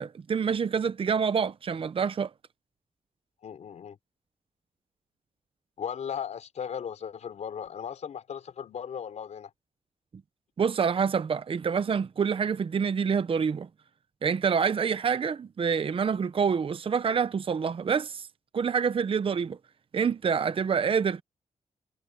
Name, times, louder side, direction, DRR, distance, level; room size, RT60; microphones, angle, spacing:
voice 1, 0.0-2.3 10.6-13.7 14.2-18.3 18.5-19.6 19.9-21.2, right 6 dB, 50° right, 0.8 m, -27 dB
voice 2, 3.4-4.0 5.8-9.5, left 8 dB, 75° left, 4.0 m, -37 dB
cardioid pair, 80°, 12 cm